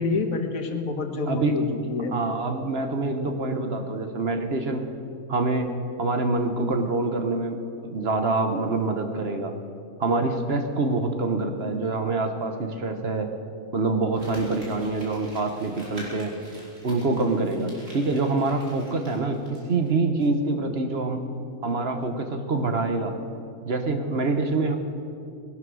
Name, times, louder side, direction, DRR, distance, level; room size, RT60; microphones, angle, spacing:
voice 1, 0.0-2.1, left 3 dB, 85° left, 5 dB, 1.7 m, -27 dB
voice 2, 2.1-4.9 5.3-5.7 6.0-7.6 7.8-9.5 10.0-13.3 13.7-16.3 16.8-21.2 21.6-23.1 23.6-24.8, right 3 dB, 50° right, 6 dB, 1.4 m, -25 dB
Crumpling crinkling, 14.1-19.9 20.2-20.3, equal, 65° right, 3.8 m, -46 dB
19.5 x 11.5 x 6.3 m, 2.5 s
omnidirectional pair, 1.4 m